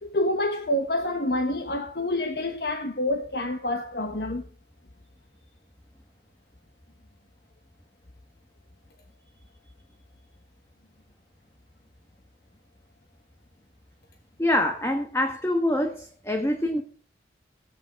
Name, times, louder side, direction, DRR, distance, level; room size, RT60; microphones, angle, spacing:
voice 1, 0.0-4.4, left 1 dB, 60° left, 1.3 m, -27 dB
voice 2, 14.4-16.8, left 1 dB, 15° left, 1.4 m, -25 dB
16.0 x 9.4 x 5.2 m
head